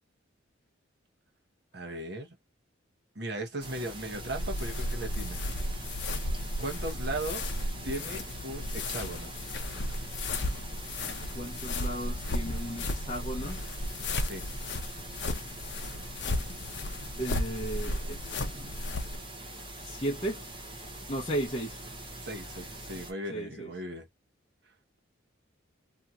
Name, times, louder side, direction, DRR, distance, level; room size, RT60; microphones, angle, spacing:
voice 1, 1.7-2.4 3.1-5.4 6.6-7.5 7.8-9.3 14.2-14.4 22.2-24.1, right 1 dB, 55° right, 1.0 m, -37 dB
sound 1, 3.6-23.1, right 1 dB, 25° right, 0.7 m, -43 dB
sound 2, 4.1-19.2, left 1 dB, 60° left, 0.7 m, -34 dB
voice 2, 11.3-13.6 17.2-18.8 19.8-20.4 21.1-21.8 23.3-23.7, right 1 dB, 30° left, 0.7 m, -35 dB
2.9 x 2.8 x 2.4 m
head